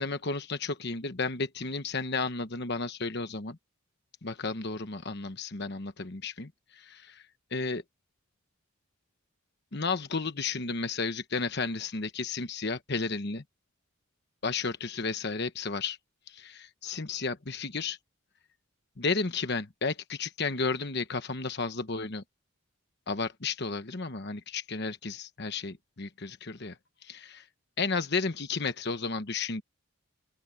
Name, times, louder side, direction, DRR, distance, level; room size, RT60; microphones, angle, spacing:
voice 1, 0.0-3.6 4.2-7.3 7.5-7.8 9.7-13.4 14.4-16.0 16.3-18.0 19.0-22.2 23.1-26.8 27.0-27.5 27.8-29.6, left 4 dB, 50° left, 1.1 m, -33 dB
open air
head